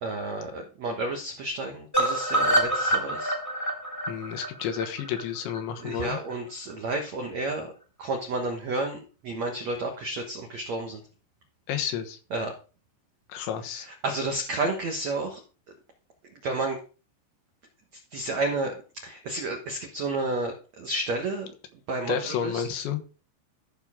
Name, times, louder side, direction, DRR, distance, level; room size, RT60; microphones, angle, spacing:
voice 1, 0.0-3.3 5.8-7.7 8.0-11.0 12.3-12.5 13.7-15.4 16.4-16.8 18.1-21.5 21.9-22.6, right 2 dB, 75° right, 2 dB, 1.6 m, -31 dB
sound 1, 1.9-6.0 6.3-6.4 6.7-6.8 7.1-7.2, right 1 dB, 5° left, 1.7 m, -27 dB
voice 2, 4.1-6.2 11.7-12.2 13.3-13.9 22.1-23.0, left 8 dB, 80° left, 6 dB, 3.4 m, -31 dB
14.5 x 6.4 x 3.7 m, 0.35 s
omnidirectional pair, 5.2 m